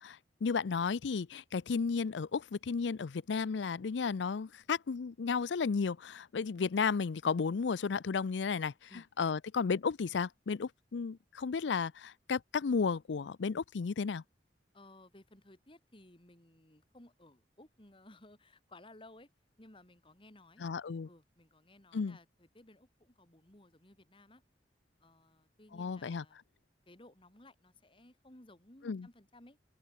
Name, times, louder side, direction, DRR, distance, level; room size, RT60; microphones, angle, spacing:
voice 1, 0.0-8.9 9.2-14.2 20.6-21.1 21.9-22.2 25.7-26.2 28.8-29.1, left 5 dB, 90° left, 0.5 m, -33 dB
voice 2, 14.7-19.3 19.6-20.6 21.1-24.4 25.0-26.4 26.9-29.6, left 1 dB, 30° left, 2.7 m, -58 dB
head